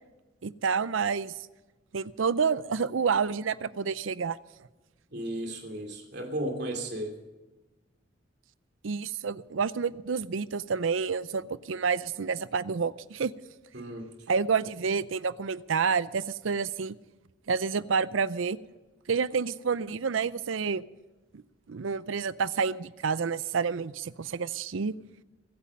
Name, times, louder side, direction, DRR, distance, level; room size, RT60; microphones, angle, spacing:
voice 1, 0.4-1.3 1.9-4.4 8.8-13.3 14.3-17.0 17.5-18.6 19.1-20.8 21.3-21.4 21.7-24.9, right 5 dB, 90° right, 17 dB, 0.6 m, -29 dB
voice 2, 5.1-7.2 13.7-14.1, right 1 dB, 60° right, 3 dB, 2.9 m, -34 dB
23.0 x 8.6 x 5.3 m, 1.1 s
head